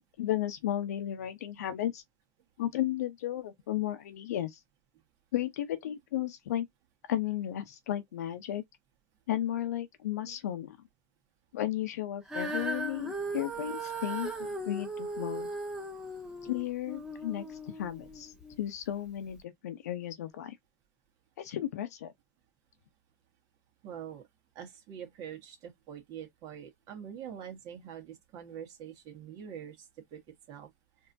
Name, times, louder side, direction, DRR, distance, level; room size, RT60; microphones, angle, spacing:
voice 1, 0.0-2.0 2.6-4.6 5.3-6.7 7.1-8.6 9.3-10.8 11.5-15.5 16.4-17.4 17.8-20.6 21.4-22.1, left 12 dB, 70° left, 0.9 m, -34 dB
Female singing, 12.3-18.6 19.3-19.4, right 2 dB, 5° right, 1.5 m, -38 dB
voice 2, 23.8-24.3 24.6-30.2 30.5-30.7, right 9 dB, 45° right, 1.7 m, -45 dB
4.6 x 2.9 x 2.7 m
hypercardioid pair, 105°, 9 cm